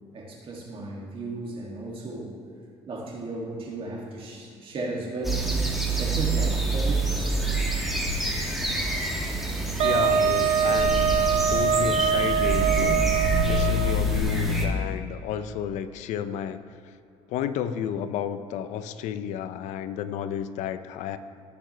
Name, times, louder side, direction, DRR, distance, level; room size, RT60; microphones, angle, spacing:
voice 1, 0.1-2.3 2.9-5.5 6.0-7.4, right 2 dB, 50° right, -2 dB, 2.4 m, -35 dB
sound 1, 5.2-14.7, right 1 dB, ahead, 2.0 m, -26 dB
voice 2, 9.8-11.1 11.5-13.0 13.4-16.6 17.3-21.2, left 9 dB, 75° left, 11 dB, 0.6 m, -31 dB
Wind instrument woodwind instrument, 9.8-14.2, right 7 dB, 65° right, 0.5 m, -24 dB
18.0 x 6.9 x 3.3 m, 2.6 s
supercardioid pair, 85°, 12 cm